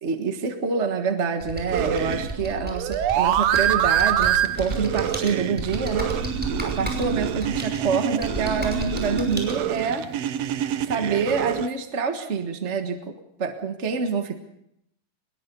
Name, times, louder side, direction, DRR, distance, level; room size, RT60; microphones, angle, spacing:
voice 1, 0.0-6.1 6.6-10.0 10.8-13.1 13.4-14.3, right 5 dB, 40° right, 5 dB, 1.0 m, -26 dB
Computer keyboard, 1.4-9.5, right 1 dB, 5° right, 5.5 m, -33 dB
sound 1, 1.7-11.7, right 10 dB, 70° right, 1.7 m, -26 dB
23.5 x 21.5 x 5.4 m, 0.77 s
omnidirectional pair, 3.7 m